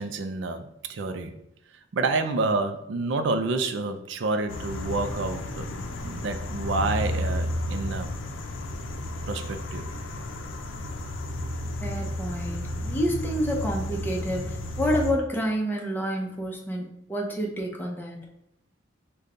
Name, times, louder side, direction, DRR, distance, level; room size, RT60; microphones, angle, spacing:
voice 1, 0.0-1.3 1.9-5.7 6.0-8.1 9.3-9.9, right 3 dB, 75° right, 8 dB, 0.4 m, -28 dB
sound 1, 4.5-15.1, left 1 dB, 90° left, 0.5 m, -32 dB
voice 2, 11.8-18.3, equal, 10° left, -1 dB, 0.7 m, -29 dB
5.2 x 2.2 x 3.7 m, 0.76 s
head